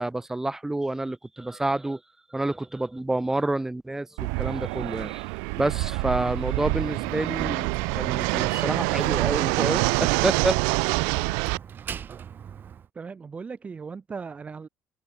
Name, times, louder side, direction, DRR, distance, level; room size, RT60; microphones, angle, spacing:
voice 1, 0.0-2.0 2.3-5.3 5.6-10.6, right 2 dB, 10° right, 0.4 m, -28 dB
Fixed-wing aircraft airplane, 4.2-11.6, right 39 dB, 80° right, 0.4 m, -26 dB
Slam, 6.7-12.9, right 8 dB, 45° right, 4.4 m, -41 dB
voice 2, 13.0-14.7, right 5 dB, 30° right, 0.9 m, -37 dB
supercardioid pair, 75°, 5 cm